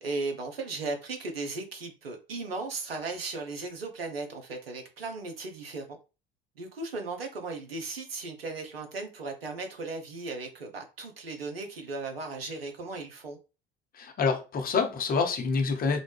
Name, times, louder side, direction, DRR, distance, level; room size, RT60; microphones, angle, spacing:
voice 1, 0.0-6.0 6.6-13.4, right 3 dB, 90° right, 0.5 m, -36 dB
voice 2, 13.9-16.0, left 5 dB, 30° left, 0.7 m, -27 dB
2.5 x 2.1 x 3.2 m
figure-of-eight pair, 60°, 29 cm